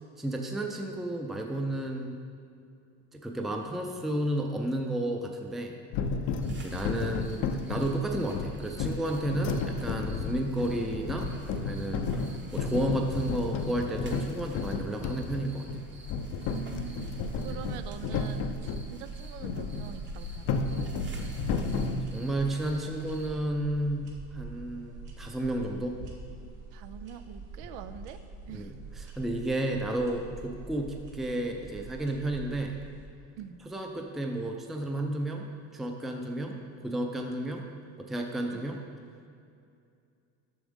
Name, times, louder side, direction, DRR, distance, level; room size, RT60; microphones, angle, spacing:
voice 1, 0.2-2.2 3.1-5.8 6.5-15.7 22.1-25.9 28.5-28.7 29.2-32.8 33.7-35.5 35.7-36.6 36.8-37.7 38.0-38.8, right 1 dB, ahead, 2 dB, 0.5 m, -32 dB
sound 1, 5.9-18.9 19.4-22.0, left 4 dB, 60° left, 0.6 m, -33 dB
sound 2, 6.4-23.3, right 2 dB, 35° right, 1.0 m, -52 dB
voice 2, 16.5-20.7 26.7-28.2 28.5-28.7 33.4-33.6 38.5-38.6, right 9 dB, 85° right, 10 dB, 0.5 m, -44 dB
sound 3, 17.0-33.1, right 3 dB, 65° right, 1.4 m, -45 dB
7.2 x 6.0 x 3.6 m, 2.4 s
supercardioid pair, 105°, 34 cm